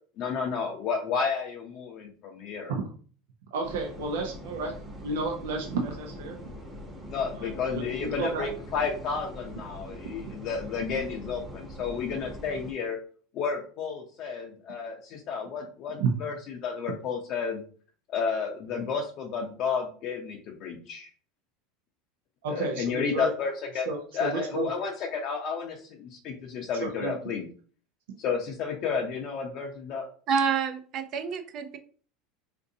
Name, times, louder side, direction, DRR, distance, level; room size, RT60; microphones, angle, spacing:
voice 1, 0.2-2.7 7.1-13.0 13.3-17.6 18.1-21.1 22.5-23.9 24.1-27.5 28.2-30.1, left 5 dB, 50° left, 1 dB, 0.5 m, -31 dB
voice 2, 3.5-4.7 5.0-6.4 7.3-8.5 16.0-16.1 22.4-23.3 23.9-24.7 26.8-27.2, right 4 dB, 90° right, 2 dB, 0.6 m, -31 dB
sound 1, 3.6-12.7, equal, 10° right, 0.9 m, -42 dB
voice 3, 30.3-31.8, right 6 dB, 45° right, 9 dB, 0.5 m, -28 dB
3.8 x 2.5 x 2.7 m, 0.43 s
supercardioid pair, 130°, 0 cm